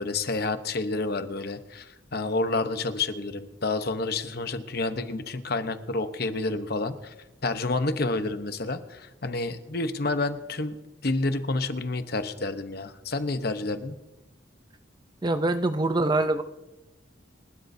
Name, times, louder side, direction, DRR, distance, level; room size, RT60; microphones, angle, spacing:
voice 1, 0.0-7.1 7.4-10.7 11.0-14.0, left 3 dB, 55° left, 9 dB, 0.9 m, -29 dB
voice 2, 15.2-16.4, right 2 dB, 20° right, 10 dB, 0.5 m, -24 dB
29.5 x 12.0 x 2.7 m, 1.0 s
head